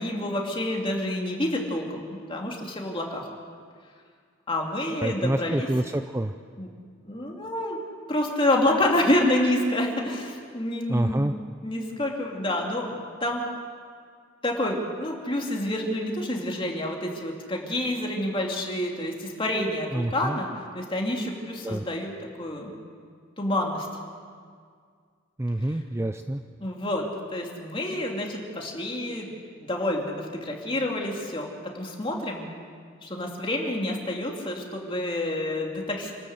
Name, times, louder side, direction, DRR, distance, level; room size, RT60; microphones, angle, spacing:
voice 1, 0.0-3.3 4.5-5.7 6.6-6.7 7.0-7.8 8.1-12.9 13.2-13.4 14.4-20.5 20.7-22.1 22.4-22.8 23.4-23.9 25.7-25.8 26.6-27.0 27.3-29.3 29.7-32.5 33.0-36.1, left 1 dB, 25° left, 0 dB, 2.7 m, -28 dB
voice 2, 5.0-6.3 10.9-11.3 19.9-20.4 21.6-21.8 25.4-26.4, right 1 dB, 15° right, 8 dB, 0.4 m, -27 dB
28.0 x 13.0 x 8.0 m, 2.1 s
head